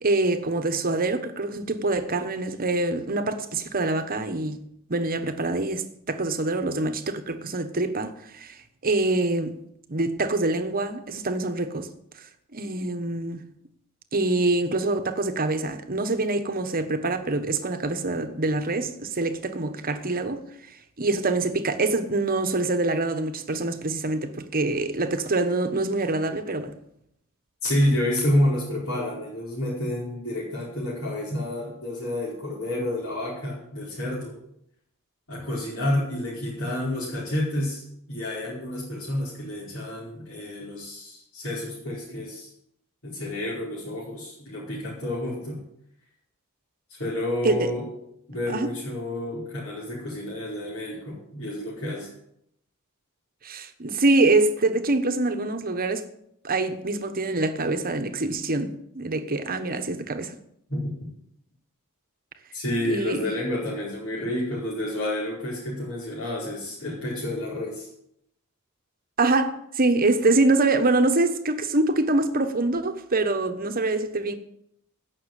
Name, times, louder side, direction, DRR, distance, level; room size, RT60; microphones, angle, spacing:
voice 1, 0.0-4.6 4.9-8.6 8.8-9.6 9.9-11.9 12.5-13.4 14.1-20.5 21.0-26.7 47.4-47.7 48.5-48.7 53.4-56.1 56.4-60.4 62.8-63.3 69.2-74.3, right 2 dB, 40° right, 1.2 m, -25 dB
voice 2, 27.6-34.3 35.3-42.5 43.0-45.6 46.9-47.8 48.3-52.1 60.7-60.9 62.5-67.9, left 1 dB, 65° left, 5.0 m, -29 dB
16.5 x 6.4 x 8.2 m
head